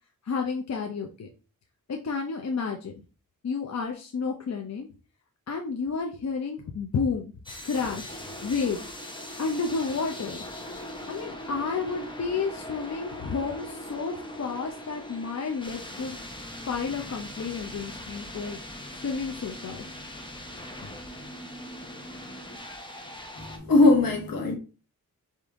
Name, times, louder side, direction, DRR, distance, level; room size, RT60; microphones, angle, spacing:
voice 1, 0.2-1.3 1.9-2.9 3.4-4.9 5.5-7.3 7.6-8.8 9.4-10.4 11.1-16.2 16.7-18.6 19.0-19.9, left 5 dB, 50° left, 0.7 m, -31 dB
sound 1, 7.5-23.6, left 1 dB, 15° left, 1.0 m, -40 dB
voice 2, 23.4-24.5, left 2 dB, 70° left, 1.5 m, -20 dB
5.2 x 2.7 x 3.5 m
cardioid pair, 75°, 35 cm